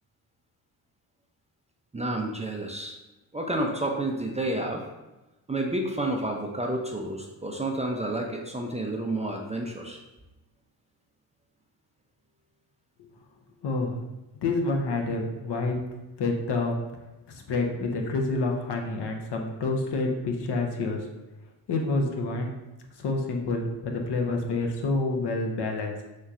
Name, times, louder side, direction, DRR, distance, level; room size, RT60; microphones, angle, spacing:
voice 1, 1.9-3.0 3.3-4.8 5.5-10.0, right 1 dB, 15° right, 1 dB, 0.5 m, -30 dB
voice 2, 13.6-14.0 14.3-15.8 16.2-16.8 17.3-21.0 21.7-22.5 23.0-25.9, left 3 dB, 55° left, 2 dB, 0.8 m, -28 dB
4.2 x 3.1 x 2.4 m, 1.0 s
supercardioid pair, 50°, 48 cm